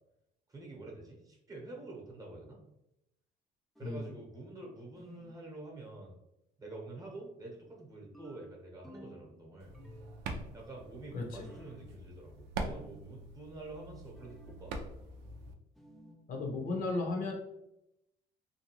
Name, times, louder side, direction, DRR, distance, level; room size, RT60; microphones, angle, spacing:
voice 1, 0.5-2.6 3.8-6.2 6.6-9.8 10.5-14.8, right 2 dB, 20° right, -1 dB, 0.9 m, -47 dB
sound 1, 3.8-4.3 5.0-5.5 8.1-9.3 9.7-10.4 11.3-11.8 14.1-14.7 15.8-16.3, equal, ahead, 0.3 m, -54 dB
sound 2, 9.6-15.5, right 3 dB, 85° right, 0.4 m, -44 dB
voice 2, 11.1-11.5 16.3-17.3, left 3 dB, 55° left, 1 dB, 0.8 m, -35 dB
2.7 x 2.3 x 2.9 m, 0.85 s
cardioid pair, 110°, 17 cm